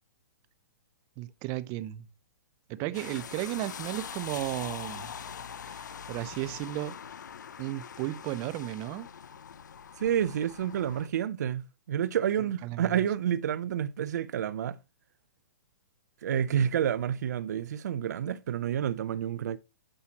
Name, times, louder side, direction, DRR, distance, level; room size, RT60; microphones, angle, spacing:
voice 1, 1.2-2.1 2.7-5.1 5.7-7.0 7.6-9.1 12.6-12.9, right 16 dB, 35° right, 0.7 m, -34 dB
sound 1, 2.9-11.1, left 7 dB, 80° left, 0.7 m, -43 dB
voice 2, 10.0-14.8 16.2-19.6, right 9 dB, 70° right, 0.5 m, -29 dB
9.9 x 7.5 x 2.9 m
hypercardioid pair, 140°, 10 cm